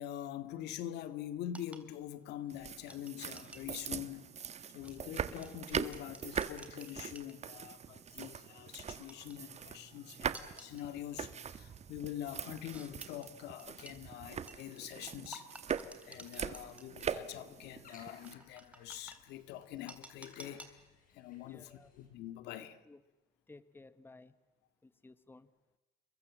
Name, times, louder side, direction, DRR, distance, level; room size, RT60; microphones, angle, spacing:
voice 1, 0.0-4.4 4.7-15.5 16.0-20.7 21.1-22.8, left 11 dB, 85° left, 2.0 m, -45 dB
sound 1, 1.5-7.7 8.1-8.3 8.9-9.6 10.3-10.9 11.5-11.7 12.7-14.0 14.5-17.0 17.3-17.4 18.2-19.2 19.9-20.7, right 1 dB, 10° right, 3.2 m, -53 dB
sound 2, 2.5-18.3, right 7 dB, 40° right, 1.4 m, -42 dB
sound 3, 16.0-22.1, left 5 dB, 55° left, 7.1 m, -63 dB
voice 2, 21.4-21.9 22.6-23.0 23.5-24.3 24.8-25.5, left 3 dB, 15° left, 1.2 m, -57 dB
29.0 x 22.5 x 7.5 m
cardioid pair, 110°, 17 cm